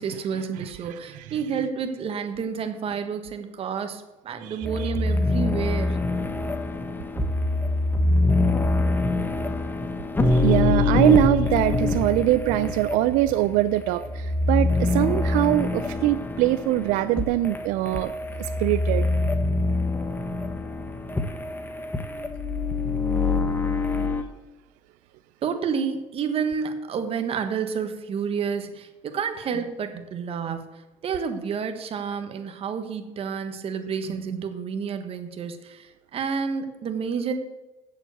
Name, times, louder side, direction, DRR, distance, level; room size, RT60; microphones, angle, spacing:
voice 1, 0.0-6.0 25.4-37.3, right 6 dB, 45° right, 8 dB, 1.5 m, -30 dB
voice 2, 0.6-1.3 4.4-4.9 10.2-19.1, right 15 dB, 75° right, 12 dB, 0.5 m, -23 dB
sound 1, 4.6-24.2, left 2 dB, 15° left, 1.2 m, -25 dB
7.8 x 7.3 x 8.2 m, 1.0 s
supercardioid pair, 100°, 13 cm